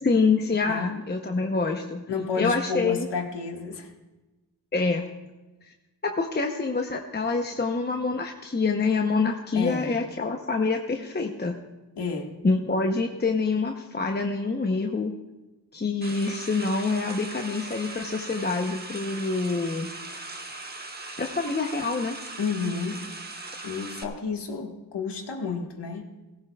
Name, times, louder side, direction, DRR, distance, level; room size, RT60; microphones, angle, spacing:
voice 1, 0.0-2.0 2.3-3.1 4.7-5.1 6.0-11.6 12.4-15.1 15.7-19.9 21.2-22.2, left 4 dB, 25° left, 3 dB, 0.8 m, -26 dB
voice 2, 2.1-3.9 9.5-9.9 12.0-12.3 22.4-23.0 23.6-26.1, left 5 dB, 90° left, 2 dB, 1.6 m, -31 dB
sound 1, 16.0-24.0, right 2 dB, 25° right, 1.1 m, -39 dB
17.5 x 16.0 x 2.3 m, 1.1 s
wide cardioid pair, 105°, 40 cm